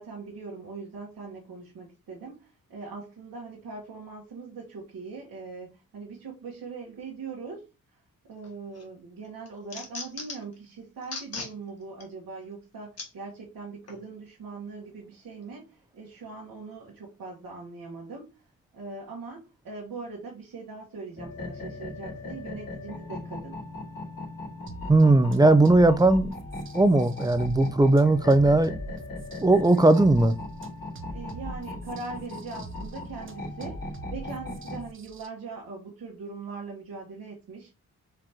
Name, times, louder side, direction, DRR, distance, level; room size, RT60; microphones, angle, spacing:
voice 1, 0.0-8.0 8.3-23.6 31.1-37.7, right 4 dB, 80° right, 1.4 m, -41 dB
sound 1, 8.4-8.9 9.2-10.5 11.0-11.5 12.0-12.1 13.0-13.1 13.9-14.0, left 3 dB, 50° left, 1.4 m, -38 dB
sound 2, 21.2-34.9, left 2 dB, 85° left, 2.2 m, -39 dB
sound 3, 24.7-35.3, right 1 dB, 35° right, 0.7 m, -42 dB
voice 2, 24.9-26.4 26.7-28.8 29.4-30.4, right 2 dB, 10° right, 0.3 m, -18 dB
4.9 x 2.9 x 3.5 m
cardioid pair, 95°, 34 cm